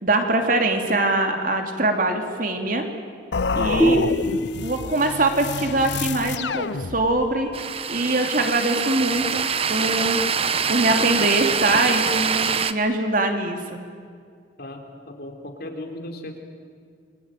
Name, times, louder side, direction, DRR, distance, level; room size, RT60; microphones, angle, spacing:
voice 1, 0.0-2.9 3.5-4.1 4.6-7.5 7.9-10.3 10.7-13.8, right 2 dB, 50° right, 4 dB, 2.9 m, -23 dB
sound 1, 3.3-7.4, left 4 dB, 80° left, 0.7 m, -28 dB
sound 2, 3.8-7.2, right 1 dB, ahead, 3.3 m, -26 dB
sound 3, 7.5-12.7, right 6 dB, 35° right, 0.9 m, -24 dB
voice 2, 14.6-16.4, left 1 dB, 60° left, 4 dB, 3.6 m, -37 dB
28.5 x 22.5 x 9.2 m, 2.1 s
head